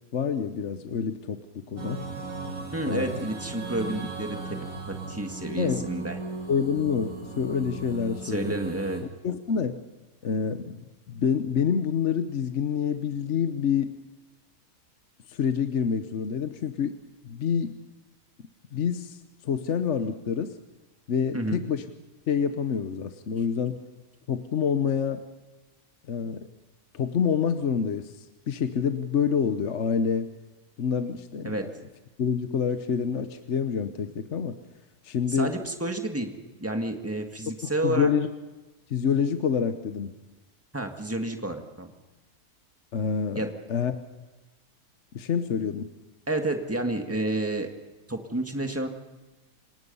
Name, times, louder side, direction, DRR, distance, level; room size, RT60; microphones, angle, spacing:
voice 1, 0.1-2.0 2.8-3.3 5.6-5.9 6.5-8.5 9.2-9.8 10.2-10.8 11.1-13.9 15.3-17.0 17.2-17.7 18.7-20.6 21.1-21.8 22.3-23.8 24.3-25.2 26.1-26.5 26.9-30.3 30.8-31.7 32.2-34.6 35.0-35.5 37.6-38.3 38.9-40.1 42.9-43.4 43.7-43.9 45.1-45.9, left 7 dB, 55° left, 9 dB, 1.2 m, -27 dB
sound 1, 1.8-9.0, right 3 dB, 60° right, 4.1 m, -37 dB
voice 2, 2.5-4.6 4.9-6.2 8.2-9.1 21.3-21.6 31.4-31.7 35.3-36.3 36.6-38.1 40.7-41.9 43.3-43.5 46.3-47.7 48.1-48.9, right 1 dB, 10° right, 4 dB, 1.8 m, -30 dB
27.5 x 18.5 x 5.5 m, 1.2 s
omnidirectional pair, 1.6 m